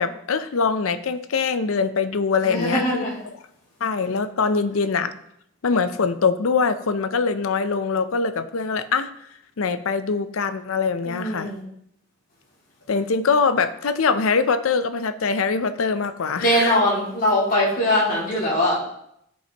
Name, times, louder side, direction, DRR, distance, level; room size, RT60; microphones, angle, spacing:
voice 1, 0.0-3.1 3.8-5.1 5.6-9.1 9.6-11.5 12.9-16.8, left 5 dB, 75° left, 11 dB, 0.6 m, -23 dB
voice 2, 2.4-3.1 11.0-11.6 16.3-18.7, left 1 dB, 40° left, -7 dB, 2.4 m, -21 dB
13.5 x 5.4 x 2.9 m, 0.75 s
head